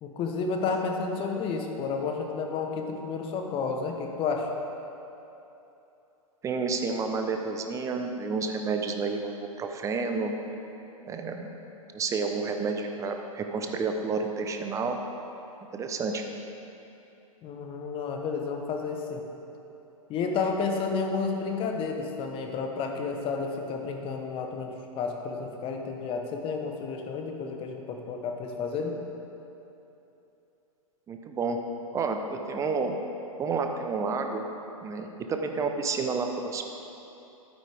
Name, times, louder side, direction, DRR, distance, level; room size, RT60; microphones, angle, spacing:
voice 1, 0.0-4.5 17.4-19.2 20.1-29.0, left 4 dB, 30° left, 3 dB, 1.1 m, -31 dB
voice 2, 6.4-10.3 11.1-11.5 11.9-15.0 15.7-16.3 31.1-31.6 31.9-33.0 33.4-34.5 34.8-36.6, right 4 dB, 15° right, 4 dB, 0.7 m, -30 dB
12.0 x 9.1 x 3.5 m, 3.0 s
hypercardioid pair, 120°, 19 cm